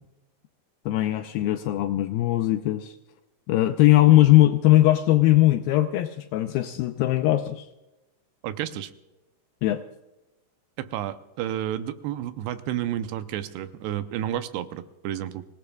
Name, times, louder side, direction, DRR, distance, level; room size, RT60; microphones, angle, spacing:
voice 1, 0.9-3.0 3.5-7.7 9.6-9.8, left 15 dB, 80° left, 8 dB, 2.1 m, -20 dB
voice 2, 8.4-8.9 10.8-15.5, right 11 dB, 85° right, 10 dB, 2.8 m, -31 dB
25.0 x 18.0 x 2.3 m, 1.0 s
omnidirectional pair, 4.7 m